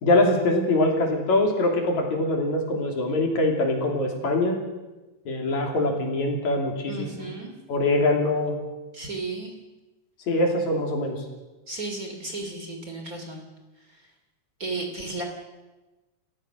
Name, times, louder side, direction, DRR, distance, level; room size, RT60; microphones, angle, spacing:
voice 1, 0.0-4.6 5.3-7.3 7.7-8.6 10.3-11.2, left 2 dB, 70° left, 2 dB, 4.4 m, -23 dB
voice 2, 6.9-7.5 8.9-9.5 11.7-13.5 13.9-14.1 14.6-15.2, right 3 dB, 30° right, 3 dB, 3.1 m, -34 dB
29.5 x 14.5 x 6.4 m, 1.1 s
omnidirectional pair, 3.4 m